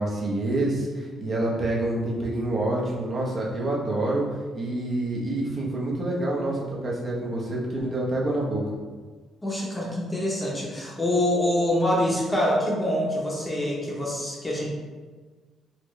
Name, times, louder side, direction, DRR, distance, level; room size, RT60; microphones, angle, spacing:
voice 1, 0.0-4.2 4.5-8.6, right 1 dB, 40° right, -4 dB, 0.9 m, -27 dB
voice 2, 9.4-14.7, left 1 dB, 20° left, -3 dB, 0.8 m, -25 dB
4.2 x 2.1 x 3.1 m, 1.4 s
cardioid pair, 90°, 0 cm